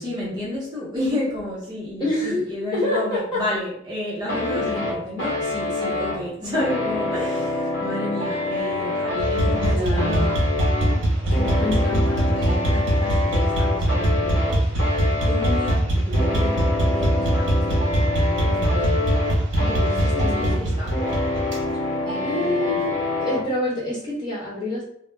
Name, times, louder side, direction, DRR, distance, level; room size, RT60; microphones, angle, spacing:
voice 1, 0.0-10.4 11.3-14.8 15.2-19.1 19.6-20.9 22.1-22.8, left 1 dB, 20° right, -7 dB, 0.8 m, -31 dB
voice 2, 2.0-2.4 2.7-3.4 4.5-4.7 9.5-10.3 11.6-12.0 20.2-20.7 22.2-24.8, left 1 dB, 25° left, -8 dB, 1.1 m, -26 dB
sound 1, 4.3-23.5, left 2 dB, 70° left, 0.9 m, -26 dB
sound 2, 9.2-21.6, right 1 dB, 65° right, 0.8 m, -22 dB
2.3 x 2.0 x 3.2 m, 0.69 s
head